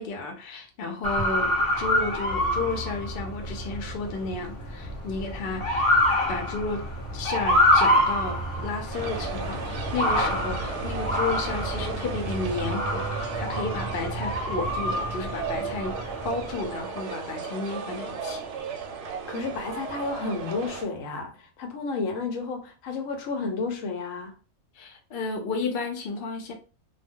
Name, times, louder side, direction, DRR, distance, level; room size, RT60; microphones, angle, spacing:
voice 1, 0.0-5.9 6.3-6.8 7.1-16.0 16.2-18.4 24.7-26.5, left 3 dB, 55° left, 0.7 m, -32 dB
Motor vehicle (road) / Siren, 1.0-16.6, left 1 dB, 25° left, 0.9 m, -27 dB
sound 1, 8.9-20.9, right 5 dB, 70° right, 0.8 m, -35 dB
voice 2, 19.3-24.3, left 4 dB, 80° left, 1.0 m, -31 dB
2.2 x 2.1 x 3.5 m
omnidirectional pair, 1.4 m